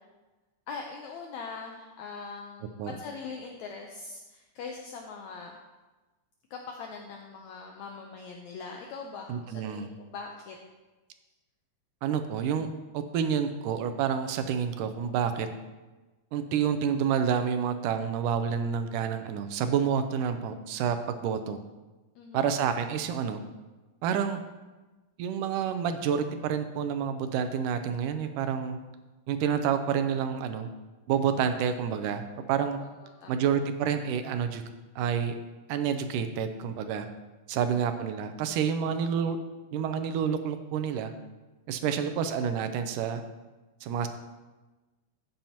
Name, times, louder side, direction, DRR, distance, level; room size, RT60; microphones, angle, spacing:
voice 1, 0.7-5.5 6.5-10.6 22.2-22.4 33.0-33.5 37.5-37.8 41.8-41.9, left 5 dB, 75° left, 2 dB, 1.9 m, -42 dB
voice 2, 9.3-9.9 12.0-12.7 12.9-15.5 16.3-21.6 22.3-23.4 24.0-24.4 25.2-28.8 29.3-30.7 31.1-32.2 32.5-32.8 33.3-34.6 35.0-35.3 35.7-37.1 37.5-39.4 39.7-41.1 41.7-43.2 43.8-44.1, right 7 dB, 85° right, 8 dB, 2.2 m, -28 dB
13.0 x 8.9 x 2.9 m, 1.2 s
omnidirectional pair, 3.7 m